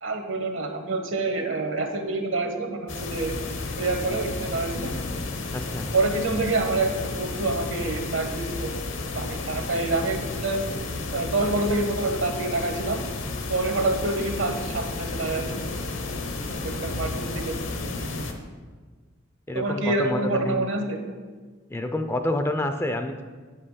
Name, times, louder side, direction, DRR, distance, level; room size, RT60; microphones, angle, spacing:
voice 1, 0.0-3.3 3.8-4.9 5.9-8.7 9.1-10.7 11.1-13.0 13.5-15.5 16.6-17.5 17.9-18.2 19.5-21.0, right 2 dB, 65° right, 5 dB, 1.1 m, -27 dB
sound 1, 2.9-18.3, left 3 dB, 65° left, 0.9 m, -32 dB
voice 2, 5.5-5.9 19.5-20.7 21.7-23.2, left 1 dB, 10° left, 7 dB, 0.4 m, -28 dB
8.7 x 5.5 x 5.5 m, 1.4 s
head